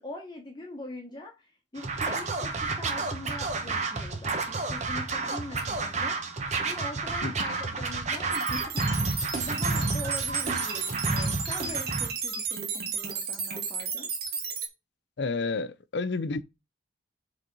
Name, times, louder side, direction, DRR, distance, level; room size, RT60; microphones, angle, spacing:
voice 1, 0.0-6.2 6.6-14.1, left 1 dB, 25° left, 1.2 m, -42 dB
Scratching (performance technique), 1.8-12.1, right 3 dB, 40° right, 1.0 m, -30 dB
voice 2, 7.2-7.6 15.2-16.4, left 3 dB, 65° left, 0.5 m, -31 dB
sound 1, 8.3-14.7, right 6 dB, 55° right, 1.7 m, -33 dB
5.4 x 4.1 x 5.3 m
head